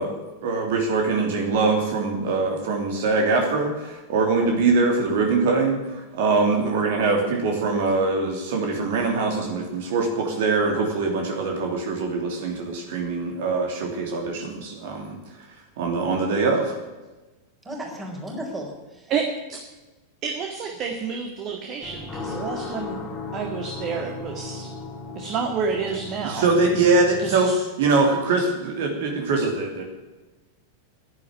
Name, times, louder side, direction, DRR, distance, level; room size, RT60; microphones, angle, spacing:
voice 1, 0.0-15.5 15.8-16.8 26.2-29.8, right 3 dB, 55° right, 2 dB, 2.8 m, -23 dB
voice 2, 17.6-19.1, right 1 dB, 15° right, 1 dB, 4.6 m, -35 dB
voice 3, 19.1-19.6 20.2-23.1 23.3-24.7 25.2-26.5 27.2-27.6, right 5 dB, 35° right, 3 dB, 1.9 m, -29 dB
sound 1, 21.8-27.3, left 3 dB, 20° left, 2.5 m, -36 dB
11.0 x 10.5 x 9.5 m, 1.2 s
figure-of-eight pair, 90°, 0 cm